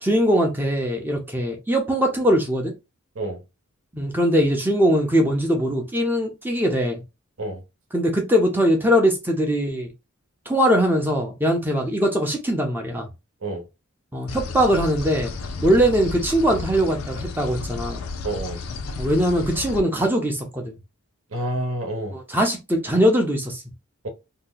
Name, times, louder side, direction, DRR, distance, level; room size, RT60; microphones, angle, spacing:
voice 1, 0.0-2.7 3.9-7.0 7.9-9.9 10.5-13.1 14.1-15.3 15.6-18.0 19.0-20.8 22.1-23.6, equal, 10° right, 0.5 m, -21 dB
sound 1, 14.3-19.8, left 3 dB, 75° left, 0.5 m, -32 dB
voice 2, 18.2-18.6 21.3-22.2 24.0-24.1, right 1 dB, 70° right, 0.9 m, -28 dB
2.8 x 2.1 x 3.8 m
head